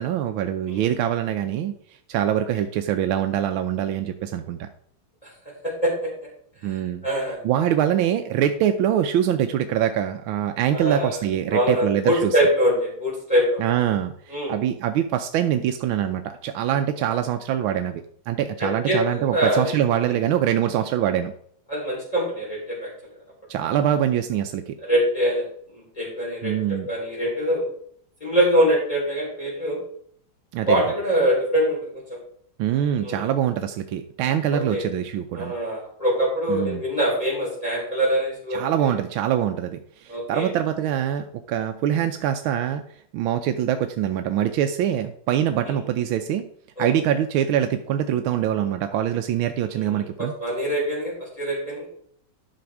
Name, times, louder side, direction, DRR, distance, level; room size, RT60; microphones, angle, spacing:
voice 1, 0.0-1.7 2.1-4.7 6.6-7.0 7.4-12.3 13.6-21.3 23.5-24.8 26.4-26.9 30.5-30.8 32.6-35.6 36.5-36.8 38.5-42.8 43.1-46.5 46.8-50.3, right 10 dB, 90° right, 7 dB, 1.5 m, -24 dB
voice 2, 5.6-6.1 6.7-7.4 10.7-11.2 11.5-13.6 14.3-14.5 18.6-19.8 21.7-22.9 24.9-25.4 25.7-26.5 26.9-27.7 28.2-29.8 30.7-32.2 33.0-33.2 34.5-34.9 35.3-38.9 40.1-40.5 45.6-45.7 46.8-46.9 49.7-51.9, equal, 15° left, -5 dB, 4.0 m, -24 dB
10.5 x 6.1 x 4.7 m, 0.62 s
omnidirectional pair, 2.2 m